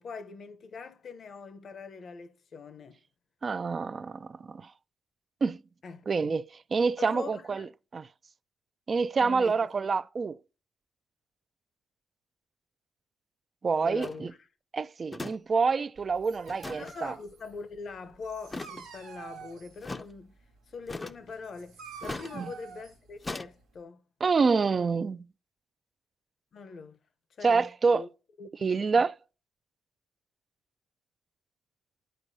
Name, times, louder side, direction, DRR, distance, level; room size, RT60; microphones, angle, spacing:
voice 1, 0.0-3.0 5.8-6.0 7.0-7.7 9.2-9.6 13.8-14.4 16.7-20.4 20.7-24.0 26.5-27.0 27.4-28.1 28.4-28.7, left 4 dB, 55° left, 0.8 m, -43 dB
voice 2, 3.4-4.7 5.4-5.6 6.1-7.7 7.9-8.1 8.9-10.4 13.6-14.3 14.7-17.1 22.4-22.5 24.2-25.3 27.4-28.0 28.6-29.1, right 4 dB, 40° right, 0.4 m, -27 dB
sound 1, 14.0-14.2 15.1-15.4 15.6-15.7 16.5-16.9 18.5-18.8 19.8-20.1 20.9-21.3 22.0-22.3 23.2-23.5, left 2 dB, 25° left, 0.5 m, -38 dB
Dog, 15.9-23.8, right 7 dB, 90° right, 1.1 m, -48 dB
11.5 x 4.4 x 2.7 m
supercardioid pair, 65°, 0 cm